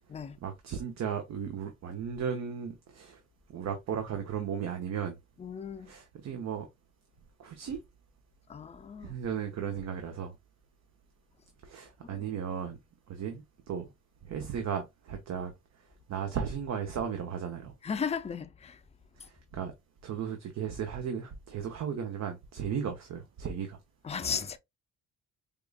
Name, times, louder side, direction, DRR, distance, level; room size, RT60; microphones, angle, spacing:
voice 1, 0.4-3.2 3.5-5.2 5.8-6.7 7.4-7.8 9.0-10.3 11.6-12.8 13.1-13.9 14.3-15.5 16.1-17.7 19.2-19.7 20.0-23.8, right 7 dB, 60° right, 0.8 m, -35 dB
voice 2, 5.4-5.9 8.5-9.1 12.0-12.2 17.8-18.8 24.0-24.6, left 6 dB, 20° left, 0.5 m, -35 dB
4.8 x 2.4 x 2.3 m
cardioid pair, 90°, 30 cm